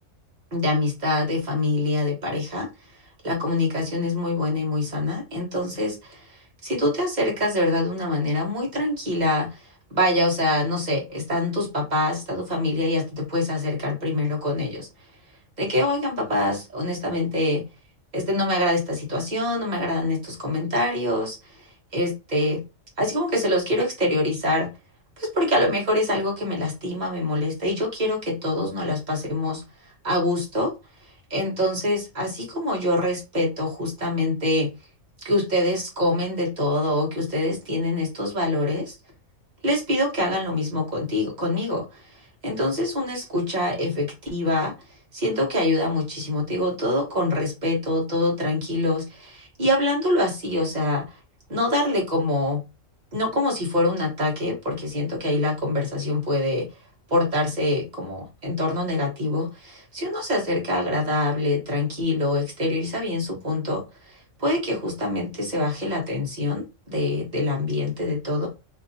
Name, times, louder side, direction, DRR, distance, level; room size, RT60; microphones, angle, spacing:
voice 1, 0.5-2.7 3.2-6.2 6.6-9.5 9.9-14.9 15.6-17.6 18.1-21.4 21.9-22.6 23.0-24.7 25.2-29.6 30.0-30.7 31.3-34.7 35.2-38.9 39.6-41.8 42.4-44.7 45.1-51.0 51.5-52.6 53.1-56.7 57.1-63.8 64.4-66.6 66.9-68.5, left 1 dB, 35° right, -2 dB, 1.2 m, -25 dB
2.9 x 2.6 x 2.6 m, 0.26 s
omnidirectional pair, 1.3 m